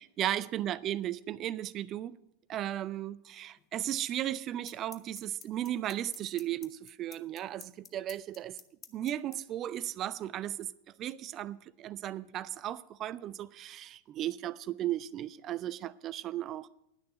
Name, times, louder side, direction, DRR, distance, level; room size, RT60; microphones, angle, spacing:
voice 1, 0.0-2.1 2.5-8.6 8.9-10.7 11.0-16.7, right 12 dB, 30° right, 0.4 m, -35 dB
sound 1, 3.6-3.7 4.7-9.3, left 8 dB, 25° left, 0.7 m, -48 dB
10.5 x 6.6 x 7.9 m
figure-of-eight pair, 90°, 0 cm